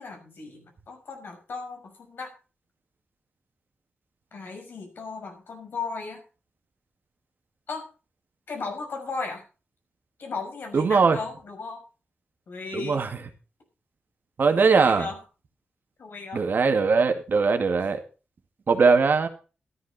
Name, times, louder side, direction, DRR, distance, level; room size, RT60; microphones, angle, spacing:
voice 1, 0.0-2.3 4.3-6.2 7.7-7.9 8.5-9.4 10.2-11.8 12.5-13.0 14.7-15.2 16.0-16.5, left 4 dB, 75° left, 3 dB, 5.8 m, -36 dB
voice 2, 10.7-11.2 12.7-13.2 14.4-15.1 16.3-18.0 18.7-19.3, right 4 dB, 60° right, 6 dB, 2.2 m, -20 dB
13.5 x 11.5 x 4.3 m, 0.34 s
cardioid pair, 85°, 4 cm